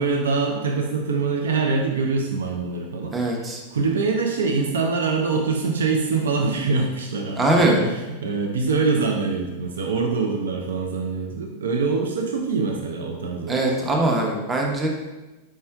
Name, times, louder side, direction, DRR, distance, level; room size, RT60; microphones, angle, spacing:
voice 1, 0.0-13.9, right 4 dB, 80° right, 2 dB, 0.4 m, -24 dB
voice 2, 3.1-3.6 7.3-7.8 13.5-14.9, right 2 dB, 20° right, 0 dB, 0.8 m, -21 dB
4.5 x 4.3 x 2.3 m, 1.1 s
hypercardioid pair, 100°, 0 cm